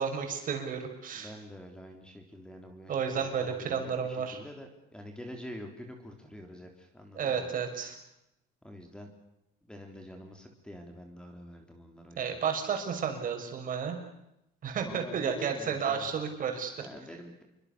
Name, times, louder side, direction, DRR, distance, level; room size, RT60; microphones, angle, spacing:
voice 1, 0.0-1.3 2.9-4.4 7.1-8.0 12.1-14.0 14.6-16.7, right 6 dB, 45° right, 4 dB, 6.3 m, -32 dB
voice 2, 1.1-7.5 8.6-9.1 9.7-12.4 14.8-16.1 16.8-17.4, equal, 5° left, 4 dB, 3.7 m, -47 dB
28.5 x 24.0 x 6.9 m, 0.84 s
cardioid pair, 145°, 19 cm